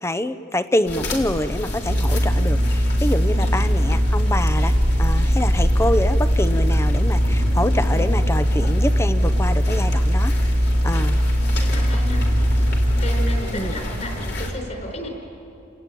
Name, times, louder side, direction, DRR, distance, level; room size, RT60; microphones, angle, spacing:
voice 1, 0.0-10.5 10.8-11.2 13.5-13.7, left 1 dB, 15° left, 12 dB, 0.8 m, -26 dB
sound 1, 0.9-14.5, equal, 60° left, 3.8 m, -27 dB
sound 2, 1.8-13.4, equal, 50° right, 1.4 m, -20 dB
voice 2, 3.7-4.2 7.3-7.6 11.3-12.3 12.5-15.1, left 1 dB, 40° left, 2 dB, 5.4 m, -34 dB
29.5 x 19.0 x 9.1 m, 2.5 s
head